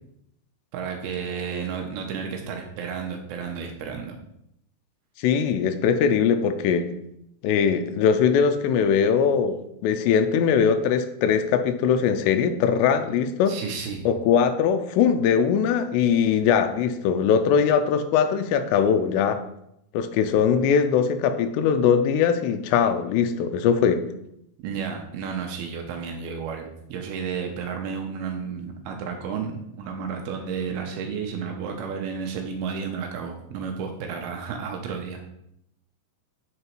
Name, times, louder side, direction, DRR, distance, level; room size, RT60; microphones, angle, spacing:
voice 1, 0.7-4.2 13.5-14.1 24.6-35.3, right 6 dB, 80° right, 3 dB, 2.4 m, -32 dB
voice 2, 5.2-6.8 7.4-13.6 14.1-19.4 19.9-24.0, left 7 dB, 85° left, 8 dB, 2.8 m, -21 dB
8.8 x 3.9 x 4.5 m, 0.79 s
omnidirectional pair, 4.8 m